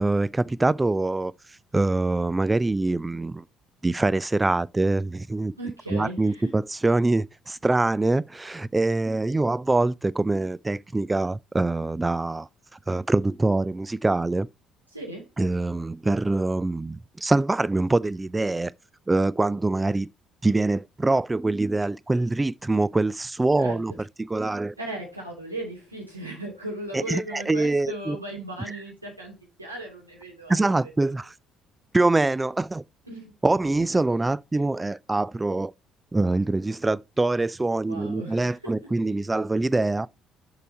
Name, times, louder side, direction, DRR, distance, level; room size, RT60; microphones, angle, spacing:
voice 1, 0.0-1.3 1.7-3.4 3.8-5.5 5.9-12.5 12.9-14.5 15.4-18.7 19.1-20.1 20.4-23.9 24.2-24.7 26.9-28.2 30.5-31.3 31.9-32.8 33.4-35.7 36.1-40.1, right 2 dB, 15° right, 0.4 m, -24 dB
voice 2, 5.6-6.5 14.9-15.3 23.5-23.8 24.8-30.6 33.0-33.3 37.9-38.7, right 1 dB, 90° right, 2.6 m, -37 dB
6.8 x 4.8 x 4.4 m
figure-of-eight pair, 50°, 0 cm